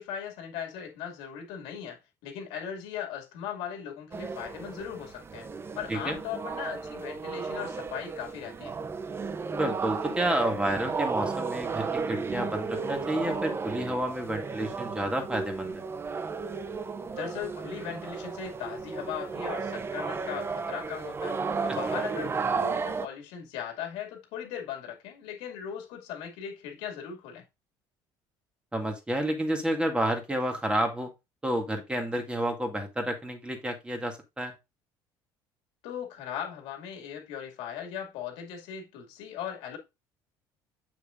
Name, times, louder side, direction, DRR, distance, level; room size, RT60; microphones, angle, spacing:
voice 1, 0.0-5.5 5.8-8.7 17.1-27.4 35.8-39.8, left 8 dB, 85° left, 2.2 m, -38 dB
sound 1, 4.1-23.1, right 4 dB, 25° right, 0.7 m, -34 dB
voice 2, 9.5-15.8 28.7-31.1 31.4-34.5, right 1 dB, 10° right, 2.1 m, -30 dB
7.2 x 6.3 x 2.5 m
cardioid pair, 105°, 9 cm